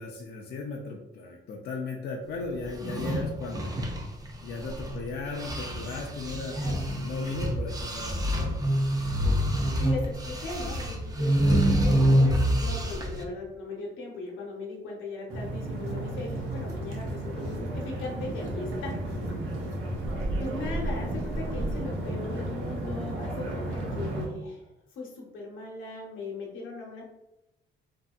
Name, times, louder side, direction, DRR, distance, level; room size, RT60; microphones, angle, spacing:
voice 1, 0.0-3.7 4.4-6.6 6.9-8.6 9.3-9.8, left 3 dB, 55° left, -1 dB, 0.4 m, -36 dB
sound 1, 2.7-5.0 5.3-13.2, equal, 20° right, 0.4 m, -26 dB
voice 2, 6.5-6.8 9.5-19.2 20.4-24.7 24.9-27.0, left 3 dB, 80° left, -1 dB, 0.8 m, -39 dB
sound 2, 15.3-24.3, right 1 dB, 85° right, 0.7 m, -34 dB
sound 3, 15.6-21.8, right 1 dB, 55° right, 1.1 m, -37 dB
2.7 x 2.6 x 2.3 m, 0.95 s
cardioid pair, 90°, 20 cm